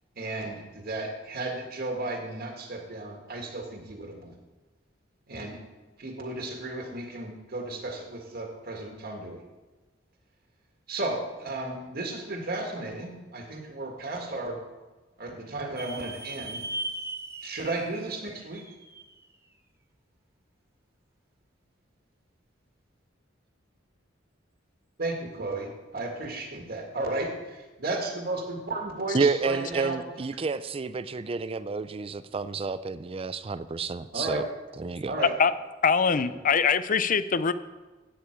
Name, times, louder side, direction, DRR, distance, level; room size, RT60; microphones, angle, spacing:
voice 1, 0.1-4.3 5.3-5.6 6.0-9.4 10.9-14.6 15.2-16.6 17.4-18.6 25.0-27.3 27.8-30.0 34.1-34.4 35.1-35.3 36.2-36.3, right 2 dB, 55° right, 1.7 m, -34 dB
sound 1, 15.8-19.3, right 2 dB, 15° right, 0.9 m, -38 dB
voice 2, 29.1-34.4 34.8-35.1, right 4 dB, 30° right, 0.4 m, -29 dB
voice 3, 35.8-37.5, left 6 dB, 45° left, 0.5 m, -23 dB
14.0 x 8.7 x 4.5 m
head